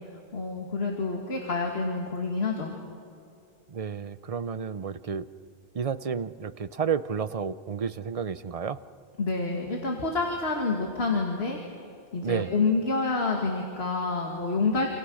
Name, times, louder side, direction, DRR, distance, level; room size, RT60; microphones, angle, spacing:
voice 1, 0.3-2.7 9.2-11.6 12.1-14.9, left 3 dB, 75° left, 1 dB, 2.5 m, -28 dB
voice 2, 3.7-5.3 5.7-8.8 12.2-12.5, right 6 dB, 40° right, 14 dB, 0.7 m, -31 dB
28.0 x 27.0 x 6.4 m, 2.5 s
omnidirectional pair, 1.1 m